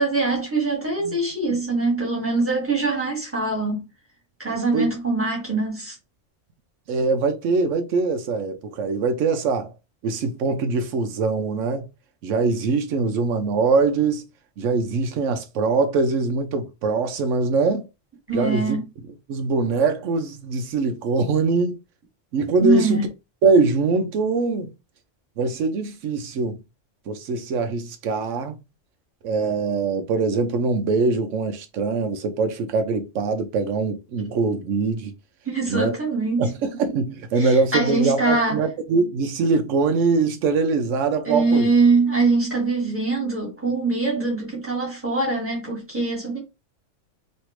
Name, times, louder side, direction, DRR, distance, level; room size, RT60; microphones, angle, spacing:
voice 1, 0.0-3.8 4.4-5.9 18.3-18.8 22.6-23.1 35.4-36.5 37.3-38.6 41.2-46.4, right 3 dB, 10° right, 1.6 m, -23 dB
voice 2, 6.9-9.7 10.0-11.8 12.2-14.2 14.6-17.9 18.3-18.8 19.3-21.8 22.3-23.0 23.4-24.7 25.4-26.6 27.1-28.6 29.2-35.1 35.7-36.0 36.4-41.7, right 4 dB, 85° right, 1.0 m, -22 dB
3.2 x 2.7 x 3.0 m
omnidirectional pair, 1.3 m